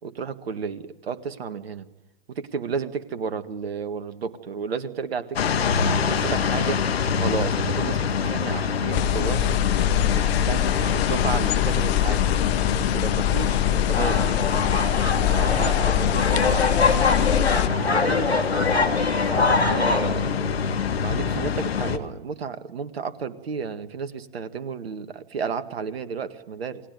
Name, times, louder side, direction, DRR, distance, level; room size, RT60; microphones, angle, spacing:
voice 1, 0.0-1.9 2.3-6.8 7.2-9.6 10.2-14.2 15.3-18.3 19.1-20.6 21.0-26.8, right 6 dB, 70° right, 11 dB, 1.8 m, -33 dB
sound 1, 5.4-22.0, left 6 dB, 70° left, 1.8 m, -25 dB
sound 2, 8.9-17.7, left 16 dB, 35° left, 1.1 m, -24 dB
sound 3, 13.9-20.1, left 3 dB, 90° left, 2.3 m, -24 dB
28.5 x 20.0 x 9.5 m, 1.0 s
figure-of-eight pair, 100°, 31 cm